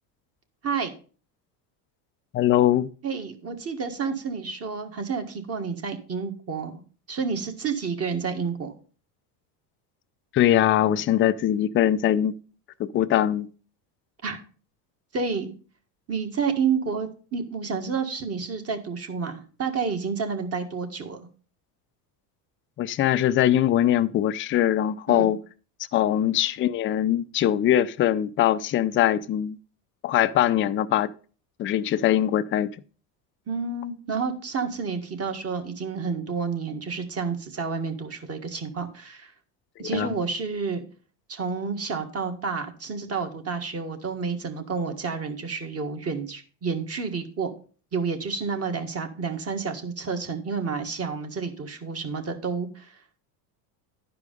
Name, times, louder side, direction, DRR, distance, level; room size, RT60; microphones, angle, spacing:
voice 1, 2.3-2.9 10.3-12.3 12.8-13.5 22.8-25.4 25.9-29.6 30.0-31.1 31.6-32.7 39.9-40.1, left 11 dB, 25° left, 0.4 m, -22 dB
voice 2, 3.0-6.8 7.1-8.7 14.2-14.4 15.1-15.5 16.1-21.3 25.1-25.3 33.5-39.3 39.8-40.8 41.3-47.5 47.9-52.9, right 5 dB, 30° right, 1.7 m, -30 dB
11.5 x 4.9 x 5.3 m
supercardioid pair, 110°, 49 cm